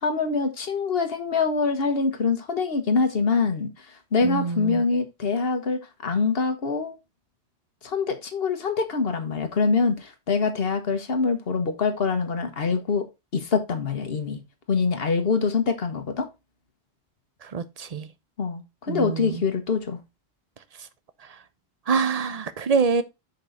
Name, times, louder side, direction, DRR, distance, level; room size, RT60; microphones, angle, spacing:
voice 1, 0.0-3.7 4.1-6.9 7.8-13.1 13.3-14.4 14.7-16.3 18.4-20.0, left 4 dB, 60° left, 1.4 m, -24 dB
voice 2, 4.2-4.8 17.4-18.1 18.9-19.4 21.9-23.0, right 5 dB, 40° right, 0.7 m, -25 dB
7.0 x 5.3 x 3.8 m
omnidirectional pair, 1.1 m